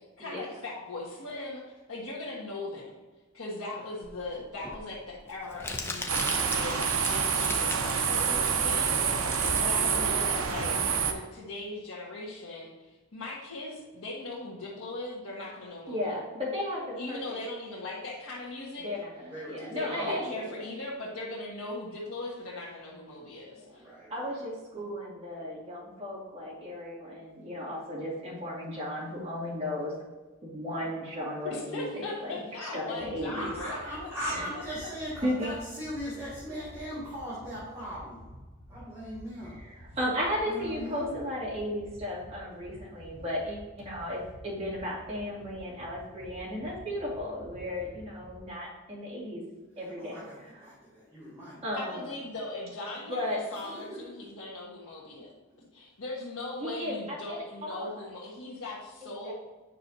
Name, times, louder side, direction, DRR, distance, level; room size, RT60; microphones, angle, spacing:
voice 1, 0.2-1.6 1.9-3.0 3.3-9.0 9.2-10.8 11.1-16.1 17.0-18.9 19.7-23.8 31.4-34.1 34.5-34.6 51.7-55.3 55.7-59.3, left 2 dB, 85° left, -6 dB, 1.4 m, -39 dB
Crumpling crinkling, 4.0-11.1, left 2 dB, 10° left, 0.6 m, -40 dB
sound 1, 6.1-11.1, right 6 dB, 80° right, 0.7 m, -27 dB
voice 2, 15.9-17.4 18.8-20.6 23.6-23.8 24.1-29.9 30.4-33.5 34.2-34.4 35.2-35.5 39.4-49.4 49.8-50.7 51.6-52.0 53.1-53.4 56.6-58.1 59.0-59.3, left 1 dB, 30° right, -7 dB, 2.4 m, -35 dB
voice 3, 19.3-20.3 23.8-24.3 33.3-38.2 38.7-39.5 40.4-41.1 50.0-51.6 53.5-54.2, equal, 15° right, -13 dB, 2.3 m, -39 dB
sound 2, 33.0-48.4, equal, 30° left, 1.2 m, -51 dB
9.1 x 5.8 x 2.7 m, 1.3 s
head